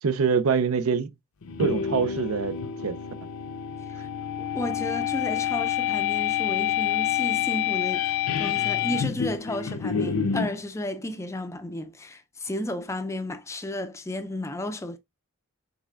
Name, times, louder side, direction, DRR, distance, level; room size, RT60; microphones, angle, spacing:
voice 1, 0.0-1.1 1.6-2.6 2.8-3.0, right 5 dB, 75° right, 0.6 m, -24 dB
sound 1, 1.4-10.6, left 9 dB, 80° left, 0.7 m, -27 dB
voice 2, 4.4-15.0, left 1 dB, 15° left, 0.4 m, -33 dB
6.5 x 3.4 x 2.4 m
head